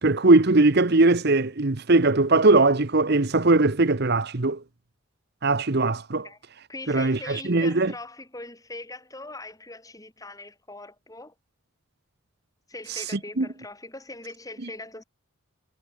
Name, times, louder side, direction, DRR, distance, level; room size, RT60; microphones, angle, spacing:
voice 1, 0.0-4.6 5.4-6.2 6.9-7.9 13.4-13.5, right 2 dB, 50° right, 1.0 m, -20 dB
voice 2, 6.7-11.3 12.7-15.0, left 2 dB, 15° left, 7.9 m, -41 dB
head